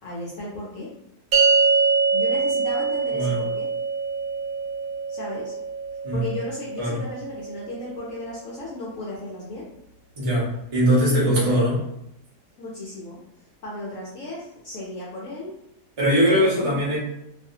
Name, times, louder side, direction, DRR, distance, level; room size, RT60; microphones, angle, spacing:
voice 1, 0.0-0.9 2.1-3.7 5.1-5.5 6.1-9.6 10.9-11.6 12.6-13.2 13.6-15.5 16.3-16.8, left 1 dB, 65° left, -5 dB, 0.9 m, -35 dB
sound 1, 1.3-7.9, right 4 dB, 90° right, 1.2 m, -24 dB
voice 2, 3.1-3.4 6.0-6.2 6.8-7.0 10.2-11.8 16.0-17.0, equal, 30° right, -7 dB, 0.7 m, -21 dB
2.7 x 2.5 x 2.7 m, 0.82 s
omnidirectional pair, 1.8 m